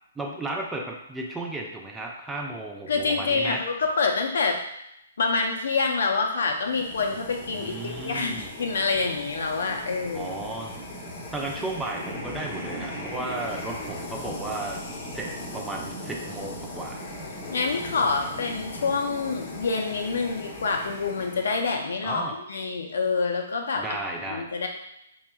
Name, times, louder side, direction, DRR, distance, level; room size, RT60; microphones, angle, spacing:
voice 1, 0.2-3.6 7.5-8.5 10.1-10.8 11.3-14.8 15.1-17.0 22.0-22.4 23.8-24.5, right 2 dB, 10° right, 0 dB, 0.5 m, -34 dB
voice 2, 2.9-4.6 5.2-10.4 17.5-24.0 24.3-24.7, left 4 dB, 70° left, 3 dB, 0.6 m, -27 dB
sound 1, 6.5-21.9, left 1 dB, 35° left, 0.8 m, -38 dB
4.6 x 3.0 x 2.3 m, 0.80 s
hypercardioid pair, 130°, 0 cm